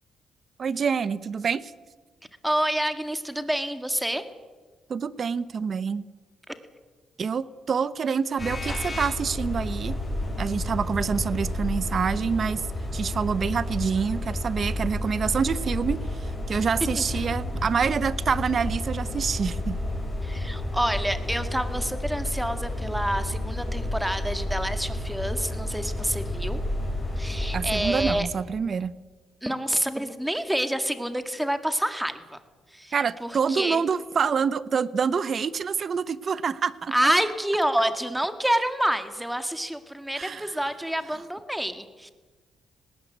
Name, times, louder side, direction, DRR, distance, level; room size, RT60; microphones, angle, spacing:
voice 1, 0.6-1.7 4.9-6.0 7.2-10.0 10.4-12.6 12.9-19.8 27.5-28.9 32.9-36.9 40.2-40.5, right 6 dB, 45° right, 17 dB, 0.9 m, -27 dB
voice 2, 2.4-4.2 6.5-6.6 20.2-26.6 27.2-28.3 29.4-32.4 32.7-33.0 33.2-33.8 36.9-42.1, right 1 dB, 5° right, 9 dB, 2.0 m, -28 dB
sound 1, 8.4-28.1, left 1 dB, 20° left, 6.8 m, -31 dB
19.0 x 18.0 x 8.3 m, 1.4 s
cardioid pair, 90°, 0 cm